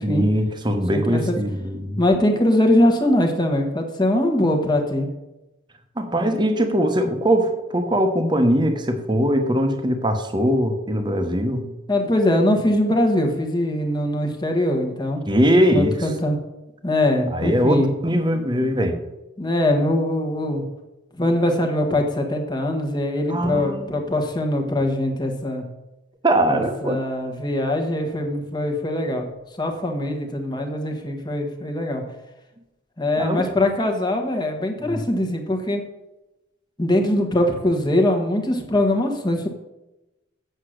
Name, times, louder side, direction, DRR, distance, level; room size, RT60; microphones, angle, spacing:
voice 1, 0.0-2.0 6.0-11.7 15.3-16.1 17.3-19.0 23.3-24.0 26.2-27.0 33.2-33.4 34.8-35.0, equal, 25° right, 6 dB, 1.1 m, -21 dB
voice 2, 0.9-1.4 2.0-5.1 11.9-15.2 15.7-16.4 16.8-17.9 19.4-20.6 21.2-25.6 26.5-29.3 29.6-32.0 33.0-35.8 36.8-39.5, left 1 dB, 20° left, 3 dB, 1.2 m, -22 dB
7.9 x 7.3 x 6.4 m, 0.99 s
head